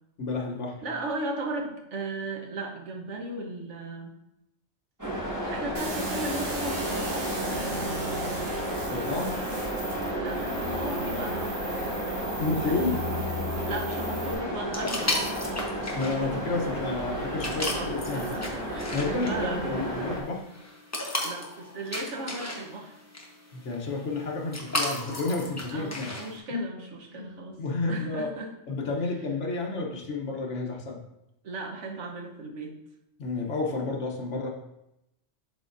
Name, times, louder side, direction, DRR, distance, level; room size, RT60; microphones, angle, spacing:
voice 1, 0.2-0.8 8.9-9.3 12.4-13.0 15.9-18.3 18.9-20.5 23.5-26.1 26.5-26.6 27.1-27.3 27.6-28.3 28.7-31.0 33.2-34.5, left 3 dB, 75° left, 1 dB, 1.3 m, -30 dB
voice 2, 0.8-4.1 5.5-7.8 9.1-9.5 10.1-11.6 12.7-13.0 13.6-15.9 16.3-16.5 17.6-19.7 21.2-23.0 25.7-27.6 27.9-28.5 31.4-32.8, right 2 dB, 80° right, 1 dB, 1.3 m, -36 dB
sound 1, 5.0-20.2, right 1 dB, 15° right, 1.7 m, -32 dB
sound 2, 5.8-14.4, equal, 50° right, 1.3 m, -37 dB
sound 3, 14.7-26.4, left 1 dB, 15° left, 0.8 m, -35 dB
11.0 x 3.8 x 2.6 m, 0.86 s
omnidirectional pair, 1.2 m